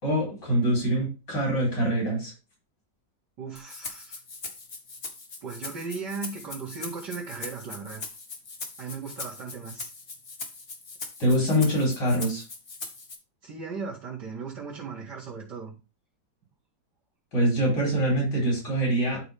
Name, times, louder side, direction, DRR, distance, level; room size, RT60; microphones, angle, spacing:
voice 1, 0.0-2.3 11.2-12.4 17.3-19.2, right 1 dB, 70° left, -3 dB, 4.4 m, -24 dB
voice 2, 3.4-4.2 5.4-8.0 8.8-9.9 13.4-15.7, right 5 dB, 70° right, -7 dB, 2.8 m, -37 dB
Rattle (instrument), 3.6-13.2, left 3 dB, 35° left, 1.4 m, -40 dB
12.0 x 4.1 x 3.3 m, 0.29 s
omnidirectional pair, 1.9 m